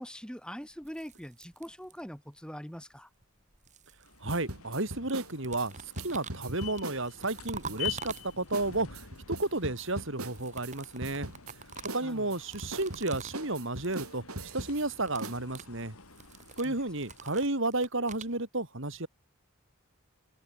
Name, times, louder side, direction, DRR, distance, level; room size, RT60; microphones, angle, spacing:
voice 1, 0.0-3.1 12.0-12.4 16.6-16.8, equal, 5° left, 6.4 m, -43 dB
sound 1, 0.7-2.3 3.2-4.8 5.1-8.7 10.1-13.5 13.7-14.1 14.3-14.7 14.9-18.4, right 5 dB, 35° right, 4.8 m, -47 dB
sound 2, 4.0-17.5, left 9 dB, 85° left, 7.0 m, -47 dB
voice 2, 4.2-11.3 11.9-14.2 14.5-15.9 16.6-19.1, right 2 dB, 60° right, 3.2 m, -32 dB
sound 3, 4.3-7.4 7.7-8.2 8.5-8.7 8.9-10.7 11.0-11.6 11.9-14.9 15.2-15.4, right 2 dB, 85° right, 6.6 m, -40 dB
head